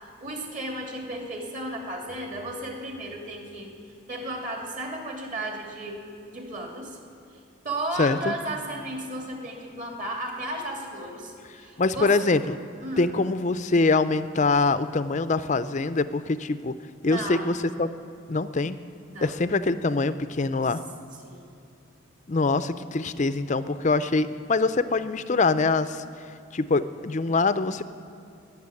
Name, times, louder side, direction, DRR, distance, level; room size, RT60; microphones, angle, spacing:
voice 1, 0.2-3.7 4.1-6.0 6.3-7.0 7.6-12.1 12.8-13.1 17.0-17.5 19.1-19.3 21.2-21.5, right 1 dB, 40° right, 0 dB, 2.6 m, -34 dB
voice 2, 8.0-8.3 11.8-12.6 13.0-16.8 17.0-17.9 18.3-18.8 19.2-20.8 22.3-26.0 26.5-27.8, left 3 dB, 35° left, 13 dB, 0.5 m, -24 dB
20.0 x 7.2 x 9.8 m, 2.6 s
head